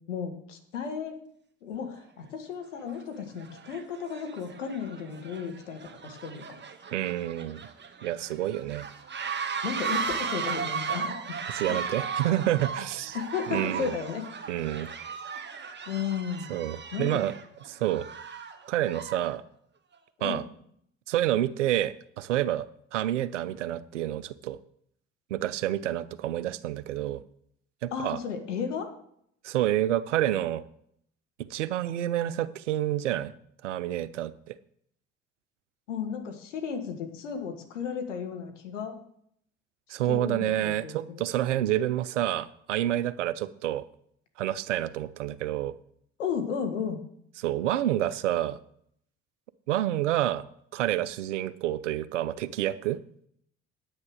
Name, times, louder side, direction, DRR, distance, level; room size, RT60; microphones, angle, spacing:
voice 1, 0.1-1.2 1.6-6.4 9.6-11.2 11.7-11.8 13.1-14.2 15.9-16.6 16.9-17.2 20.2-20.4 27.9-28.9 35.9-39.0 40.1-41.3 46.2-47.0, left 6 dB, 85° left, 5 dB, 1.7 m, -34 dB
sound 1, 2.0-2.1 2.8-3.0 3.4-19.3, right 6 dB, 30° right, 1.6 m, -36 dB
voice 2, 6.9-7.6 8.0-8.9 11.5-13.2 13.5-13.9 14.5-14.9 16.5-17.3 17.7-18.1 18.7-19.4 20.2-20.4 21.1-24.6 25.3-27.2 27.8-28.2 29.4-30.6 31.5-33.3 33.6-34.5 39.9-43.8 44.4-45.7 47.4-48.6 49.7-50.5 50.7-53.0, right 13 dB, 85° right, 17 dB, 0.6 m, -28 dB
9.6 x 8.9 x 6.4 m, 0.69 s
hypercardioid pair, 55°, 35 cm